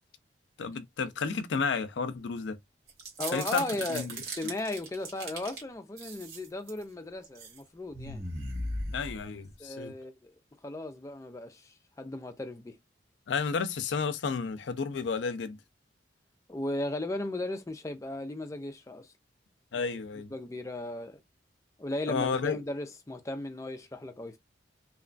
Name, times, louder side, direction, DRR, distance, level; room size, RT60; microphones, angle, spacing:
voice 1, 0.6-2.6 3.3-4.2 8.9-9.9 13.3-15.6 19.7-20.3 22.1-22.6, left 5 dB, 75° left, 0.4 m, -32 dB
sound 1, 2.9-5.6 6.0-6.8 7.2-7.6 7.9-9.5, right 2 dB, 55° right, 1.3 m, -38 dB
voice 2, 3.2-8.3 9.6-10.3 10.6-12.7 16.5-19.1 19.7-20.0 20.3-21.2 21.8-24.4, left 1 dB, 15° left, 0.4 m, -36 dB
2.8 x 2.3 x 2.4 m
head